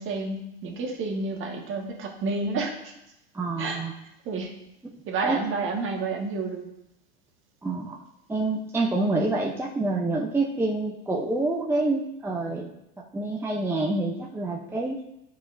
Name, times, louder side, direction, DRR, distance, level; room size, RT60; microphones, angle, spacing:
voice 1, 0.0-2.9 3.6-3.8 4.2-4.5 5.1-6.6, right 3 dB, 40° right, 1 dB, 1.6 m, -30 dB
voice 2, 3.3-3.9 4.8-4.9 5.2-5.4 7.6-8.0 8.3-12.7 13.0-15.0, right 2 dB, 10° right, -2 dB, 0.6 m, -27 dB
9.3 x 5.0 x 2.6 m, 0.85 s
hypercardioid pair, 100°, 31 cm